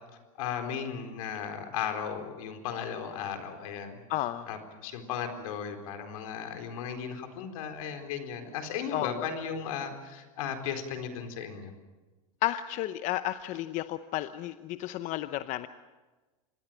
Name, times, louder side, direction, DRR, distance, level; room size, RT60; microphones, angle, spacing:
voice 1, 0.4-4.0 4.5-11.7, left 7 dB, 75° left, 5 dB, 4.2 m, -36 dB
voice 2, 4.1-4.5 8.9-9.2 12.4-15.7, left 14 dB, 45° left, 12 dB, 0.8 m, -32 dB
26.5 x 20.0 x 7.6 m, 1.2 s
supercardioid pair, 130°, 18 cm